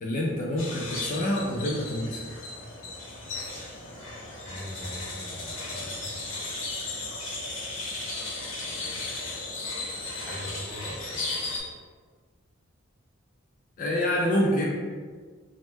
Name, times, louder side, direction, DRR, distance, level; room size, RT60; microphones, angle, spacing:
voice 1, 0.0-2.2 13.8-14.7, left 1 dB, 40° left, -2 dB, 0.3 m, -27 dB
sound 1, 0.6-11.6, left 3 dB, 70° left, 0.7 m, -35 dB
voice 2, 4.4-6.1 6.9-7.1 8.8-9.3 10.2-11.3, equal, 5° right, -8 dB, 0.7 m, -42 dB
3.0 x 2.1 x 3.2 m, 1.5 s
head